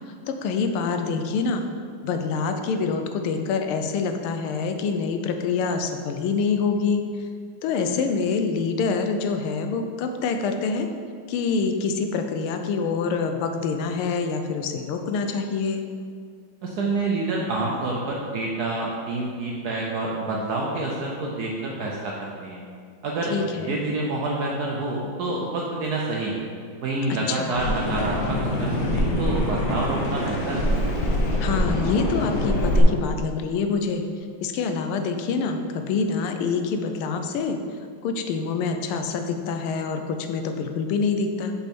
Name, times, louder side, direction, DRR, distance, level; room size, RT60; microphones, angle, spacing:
voice 1, 0.1-1.6 2.0-7.3 7.6-10.9 11.3-15.8 23.2-23.8 27.3-27.5 31.4-34.0 34.4-37.6 38.0-41.5, left 5 dB, 85° left, 6 dB, 1.5 m, -26 dB
voice 2, 16.6-22.6 23.0-26.4 26.8-30.7, right 2 dB, 70° right, -2 dB, 0.9 m, -28 dB
sound 1, 27.5-32.8, equal, 60° left, 1.4 m, -24 dB
5.6 x 5.6 x 4.3 m, 2.1 s
omnidirectional pair, 2.3 m